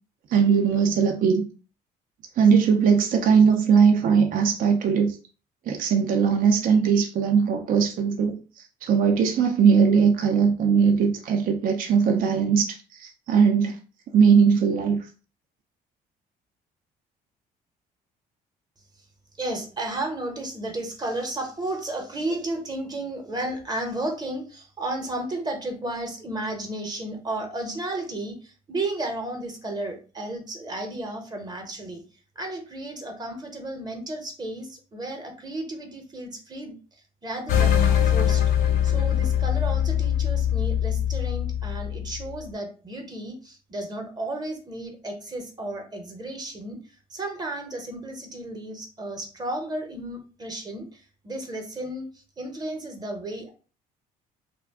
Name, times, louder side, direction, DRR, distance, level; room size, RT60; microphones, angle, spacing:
voice 1, 0.3-1.5 2.4-5.2 5.7-13.8 14.1-15.1, right 6 dB, 55° right, 3 dB, 0.4 m, -20 dB
voice 2, 19.4-32.0 32.4-36.7 37.2-38.4 38.8-46.8 47.1-53.5, right 1 dB, 25° right, 3 dB, 0.8 m, -33 dB
sound 1, 37.5-42.4, left 10 dB, 70° left, 0.6 m, -22 dB
2.4 x 2.1 x 3.4 m, 0.37 s
cardioid pair, 110°, 17 cm